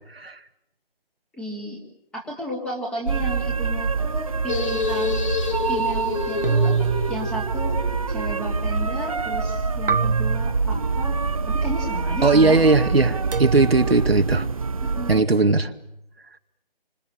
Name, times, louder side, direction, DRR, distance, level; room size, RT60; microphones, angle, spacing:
voice 1, 1.3-1.8 2.1-5.2 5.7-6.7 7.1-7.8 8.1-11.2 11.5-12.6 13.4-13.9 14.8-15.2, equal, 5° left, -1 dB, 2.7 m, -33 dB
sound 1, 3.1-15.2, right 4 dB, 35° right, 0.9 m, -26 dB
sound 2, 4.5-11.5, left 4 dB, 30° left, 3.6 m, -31 dB
sound 3, 6.4-8.2 9.9-11.3 13.3-13.7, right 5 dB, 65° right, 1.3 m, -26 dB
voice 2, 12.2-14.5 15.1-15.7, right 3 dB, 85° right, 6 dB, 2.3 m, -18 dB
29.5 x 26.5 x 6.6 m, 0.77 s
figure-of-eight pair, 165°, 29 cm